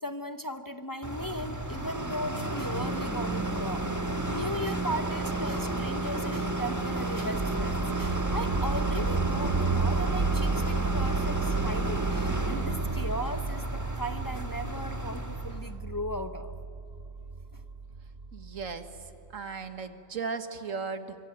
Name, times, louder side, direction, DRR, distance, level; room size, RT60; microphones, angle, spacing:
voice 1, 0.0-3.9 4.3-16.5 17.5-17.6, equal, 20° left, 8 dB, 0.9 m, -37 dB
sound 1, 1.0-15.7, right 2 dB, 15° right, 1.8 m, -32 dB
sound 2, 7.3-19.3, right 4 dB, 40° right, 1.1 m, -32 dB
voice 2, 18.3-18.9 19.3-21.2, right 5 dB, 90° right, 9 dB, 1.9 m, -36 dB
25.0 x 25.0 x 8.9 m, 2.8 s
omnidirectional pair, 1.3 m